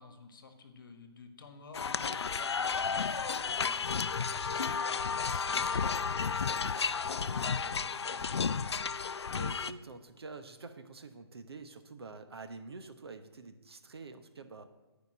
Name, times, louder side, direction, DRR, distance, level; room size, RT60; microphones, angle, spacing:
voice 1, 0.0-8.9, left 4 dB, 55° left, 7 dB, 1.3 m, -52 dB
sound 1, 1.7-9.7, left 5 dB, 85° left, 0.4 m, -32 dB
voice 2, 9.4-14.7, right 3 dB, 70° right, 8 dB, 1.0 m, -47 dB
10.5 x 5.2 x 7.5 m, 1.1 s
hypercardioid pair, 155°, 14 cm